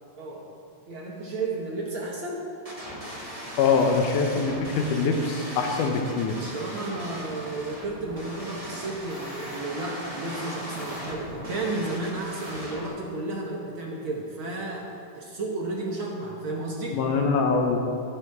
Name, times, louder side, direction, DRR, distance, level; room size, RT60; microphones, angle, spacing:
voice 1, 0.2-0.5 0.9-2.5 6.4-17.0, right 2 dB, 60° right, -2 dB, 1.5 m, -33 dB
sound 1, 2.6-12.9, equal, 15° right, 1.1 m, -38 dB
voice 2, 3.6-6.4 16.9-17.8, left 4 dB, 80° left, 3 dB, 2.3 m, -23 dB
12.0 x 10.0 x 4.7 m, 2.7 s
omnidirectional pair, 3.7 m